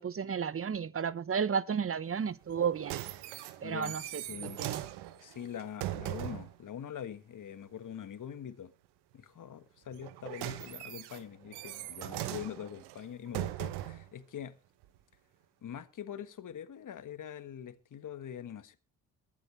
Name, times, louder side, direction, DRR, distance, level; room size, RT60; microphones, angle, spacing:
voice 1, 0.0-3.0 3.6-4.0 4.6-4.8, right 7 dB, 35° right, 1.0 m, -32 dB
sound 1, 2.5-6.6 9.9-14.1 14.8-14.9, right 15 dB, 80° right, 1.1 m, -40 dB
voice 2, 3.6-4.6 5.2-8.7 9.1-14.5 15.6-18.8, left 9 dB, 50° left, 1.5 m, -44 dB
22.5 x 7.9 x 3.2 m
hypercardioid pair, 55°, 40 cm